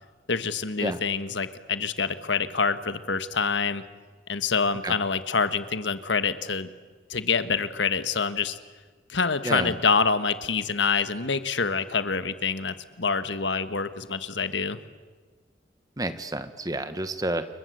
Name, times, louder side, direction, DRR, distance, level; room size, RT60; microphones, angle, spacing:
voice 1, 0.3-3.8 4.3-6.7 7.1-8.6 9.1-14.8, left 5 dB, 80° left, 11 dB, 1.5 m, -26 dB
voice 2, 16.0-17.5, right 1 dB, 20° right, 10 dB, 1.5 m, -29 dB
29.5 x 23.0 x 8.0 m, 1.4 s
head